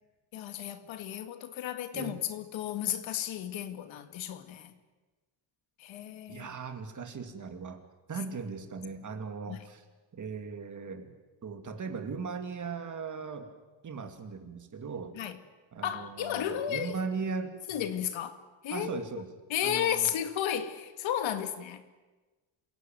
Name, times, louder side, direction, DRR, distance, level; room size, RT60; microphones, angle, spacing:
voice 1, 0.3-4.8 5.8-6.5 9.1-9.2 9.5-9.7 15.2-15.4 15.8-17.0 17.7-19.0 19.5-21.8, left 10 dB, 85° left, 2.0 m, -33 dB
voice 2, 6.3-9.8 10.1-11.2 11.4-13.5 13.8-15.2 15.7-17.6 18.7-19.3 19.6-20.1, right 5 dB, 40° right, 2.8 m, -38 dB
27.0 x 16.5 x 9.3 m
cardioid pair, 120°, 45 cm